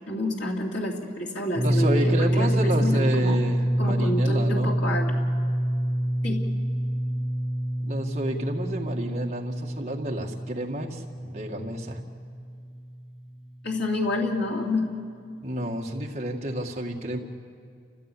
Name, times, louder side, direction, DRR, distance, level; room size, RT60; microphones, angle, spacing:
voice 1, 0.0-3.4 3.8-5.2 6.2-6.4 13.6-15.0, left 1 dB, 70° left, -1 dB, 2.7 m, -29 dB
sound 1, 1.6-13.3, equal, 5° right, 1.7 m, -26 dB
voice 2, 1.6-4.8 7.8-12.0 15.4-17.2, right 1 dB, 35° right, 0 dB, 1.9 m, -30 dB
30.0 x 15.0 x 8.6 m, 2.3 s
head